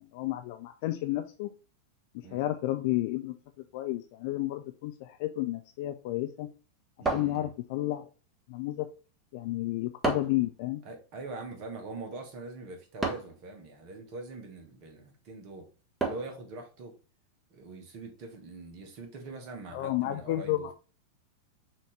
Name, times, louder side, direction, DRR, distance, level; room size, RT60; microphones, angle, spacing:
voice 1, 0.0-1.5 2.1-3.4 3.7-6.5 7.1-8.1 8.5-8.9 9.3-10.8 19.7-20.7, left 15 dB, 50° left, 0.3 m, -31 dB
voice 2, 7.0-7.5 10.8-15.7 16.0-16.9 17.5-20.7, right 3 dB, 45° right, 1.3 m, -43 dB
sound 1, 7.1-7.9 10.0-10.5 13.0-13.4 16.0-16.4, right 3 dB, 10° right, 1.2 m, -32 dB
5.8 x 2.8 x 3.2 m
figure-of-eight pair, 90°, 0 cm